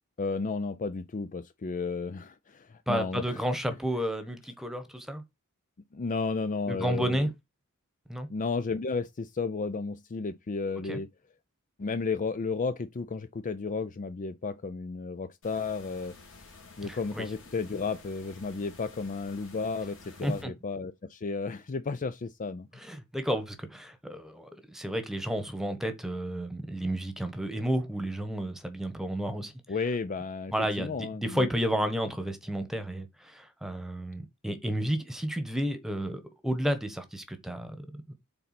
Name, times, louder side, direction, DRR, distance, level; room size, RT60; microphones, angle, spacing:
voice 1, 0.2-3.4 5.9-7.3 8.3-11.1 11.8-16.1 16.8-22.7 29.7-31.5, left 4 dB, 35° left, 0.5 m, -33 dB
voice 2, 2.9-5.2 6.7-7.3 8.1-8.3 10.9-11.0 16.8-17.3 20.2-20.5 22.8-29.5 30.5-38.0, equal, ahead, 1.3 m, -32 dB
sound 1, 15.4-20.4, left 3 dB, 65° left, 3.5 m, -51 dB
6.8 x 4.1 x 5.9 m
head